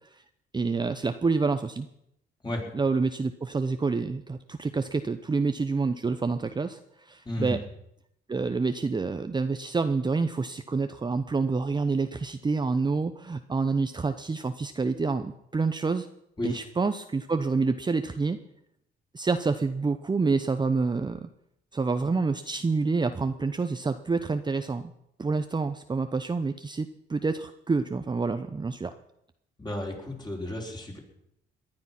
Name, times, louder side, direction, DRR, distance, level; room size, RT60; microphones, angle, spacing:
voice 1, 0.5-1.9 2.7-7.6 8.3-16.1 16.4-18.4 19.1-21.3 21.7-24.9 25.2-28.9, right 4 dB, 20° right, 9 dB, 0.8 m, -28 dB
voice 2, 7.2-7.6 16.4-16.6 29.6-31.0, left 1 dB, 20° left, 0 dB, 4.7 m, -32 dB
18.5 x 11.0 x 6.0 m, 0.77 s
cardioid pair, 90°, 20 cm